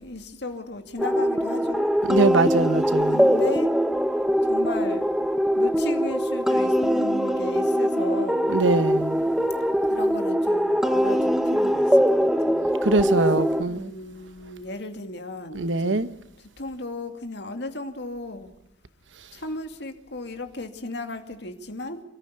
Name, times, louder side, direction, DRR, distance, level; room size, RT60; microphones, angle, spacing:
voice 1, 0.0-1.9 3.1-3.8 4.4-5.1 5.5-8.5 9.9-12.7 13.7-16.1 16.4-18.5 19.3-22.0, left 2 dB, 65° left, 2.5 m, -35 dB
sound 1, 1.0-13.6, equal, ahead, 1.0 m, -22 dB
voice 2, 2.1-3.2 8.5-9.2 12.8-13.9 15.5-16.1, right 2 dB, 80° right, 1.1 m, -22 dB
27.0 x 14.0 x 9.6 m
head